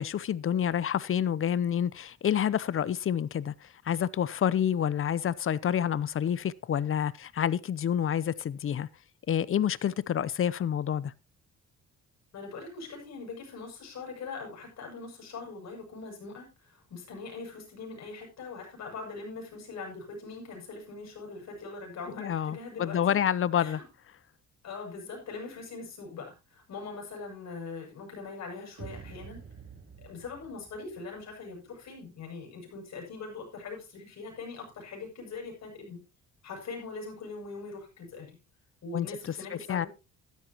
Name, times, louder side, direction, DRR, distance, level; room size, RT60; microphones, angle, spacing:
voice 1, 0.0-8.9 9.3-11.1 22.2-23.8 38.9-39.9, left 9 dB, 45° left, 0.7 m, -28 dB
voice 2, 12.3-23.2 23.6-23.8 24.6-29.4 30.0-36.0 36.4-38.4 38.8-39.9, left 4 dB, 60° left, 7.6 m, -42 dB
sound 1, 28.8-32.0, right 6 dB, 45° right, 3.8 m, -48 dB
13.0 x 12.5 x 3.0 m
cardioid pair, 90°, 30 cm